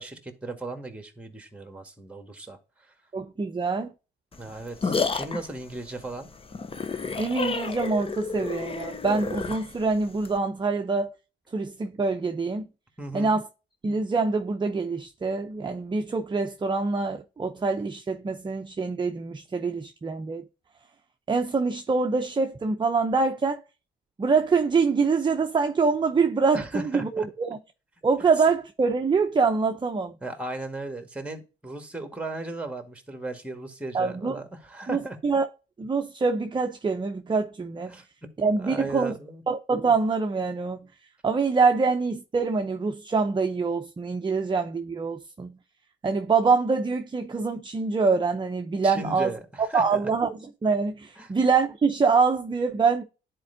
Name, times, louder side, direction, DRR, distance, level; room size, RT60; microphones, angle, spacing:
voice 1, 0.0-2.6 4.4-6.3 13.0-13.4 26.5-27.3 30.2-35.2 37.9-38.1 38.6-39.4 48.8-50.1 51.2-51.3, right 2 dB, 5° right, 1.8 m, -36 dB
voice 2, 3.1-3.9 7.2-11.1 11.5-12.7 13.1-13.5 13.8-20.5 21.3-23.6 24.2-27.6 28.0-30.2 33.9-34.3 34.9-35.5 35.8-37.9 38.4-39.1 39.5-40.8 41.2-45.5 46.0-49.3 49.7-53.0, right 4 dB, 25° right, 0.7 m, -25 dB
sound 1, 4.3-10.4, left 4 dB, 30° left, 0.7 m, -31 dB
10.5 x 4.4 x 2.7 m
cardioid pair, 90°, 20 cm